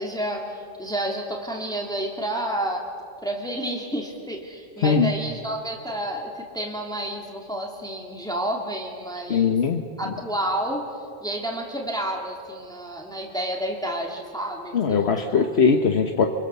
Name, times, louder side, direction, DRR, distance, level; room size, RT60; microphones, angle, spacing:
voice 1, 0.0-2.8 3.2-9.5 10.0-10.8 11.2-15.4, right 1 dB, 5° left, 0 dB, 2.4 m, -30 dB
voice 2, 4.8-5.1 9.3-9.8 14.7-16.3, left 5 dB, 70° left, 4 dB, 1.4 m, -20 dB
28.0 x 23.5 x 6.8 m, 2.4 s
omnidirectional pair, 1.1 m